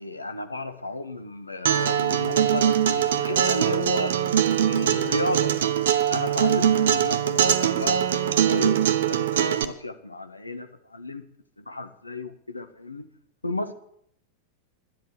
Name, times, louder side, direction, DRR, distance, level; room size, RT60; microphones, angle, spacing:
voice 1, 0.0-4.2 4.7-5.5 6.1-11.2 11.6-13.1 13.4-13.7, left 2 dB, 80° left, 9 dB, 1.2 m, -33 dB
Acoustic guitar, 1.6-9.6, right 9 dB, 60° right, 0.9 m, -22 dB
12.0 x 10.5 x 8.1 m, 0.69 s
figure-of-eight pair, 90°, 0 cm